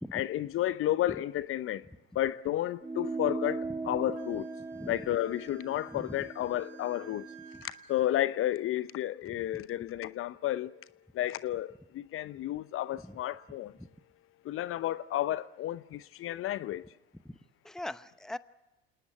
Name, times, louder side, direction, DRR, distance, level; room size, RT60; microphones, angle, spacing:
voice 1, 0.1-1.8 2.2-4.4 4.9-7.3 7.9-10.7 11.2-13.7 14.5-16.8, left 13 dB, 45° left, 0.8 m, -32 dB
sound 1, 2.8-7.6, right 3 dB, 15° right, 1.9 m, -39 dB
Wind instrument woodwind instrument, 4.1-8.1, right 9 dB, 55° right, 5.9 m, -56 dB
voice 2, 9.3-9.6 13.0-13.2 13.8-13.9 17.2-17.3 17.6-18.4, left 1 dB, ahead, 0.9 m, -41 dB
28.5 x 19.0 x 8.9 m
hypercardioid pair, 70°, 31 cm